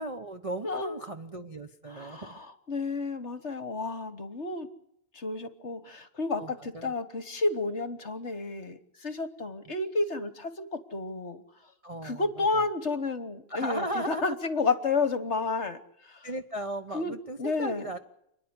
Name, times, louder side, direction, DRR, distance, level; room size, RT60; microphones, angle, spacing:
voice 1, 0.0-2.4 6.3-6.9 9.7-9.8 11.8-12.5 13.5-14.3 16.2-18.0, right 1 dB, 40° right, 4 dB, 0.4 m, -36 dB
voice 2, 0.6-1.0 1.9-4.7 5.1-11.4 12.0-16.3 16.9-17.9, left 3 dB, 40° left, 11 dB, 1.2 m, -31 dB
29.0 x 10.5 x 9.7 m, 0.79 s
omnidirectional pair, 2.2 m